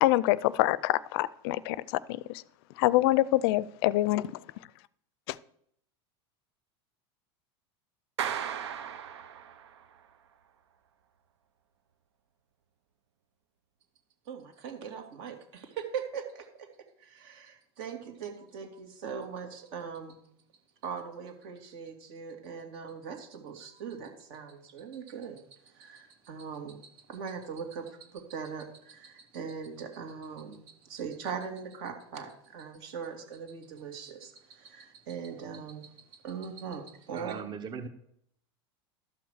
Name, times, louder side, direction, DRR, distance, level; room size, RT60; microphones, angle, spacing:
voice 1, 0.0-2.4 2.8-4.3 5.3-5.4, left 17 dB, 65° left, 0.5 m, -26 dB
Clapping, 8.2-9.9, right 9 dB, 90° right, 0.9 m, -36 dB
voice 2, 14.3-16.7 17.0-20.2 20.8-35.9 36.2-37.3, right 6 dB, 65° right, 2.8 m, -40 dB
voice 3, 37.1-37.9, right 6 dB, 35° right, 1.2 m, -38 dB
12.5 x 5.9 x 6.5 m
supercardioid pair, 115°, 14 cm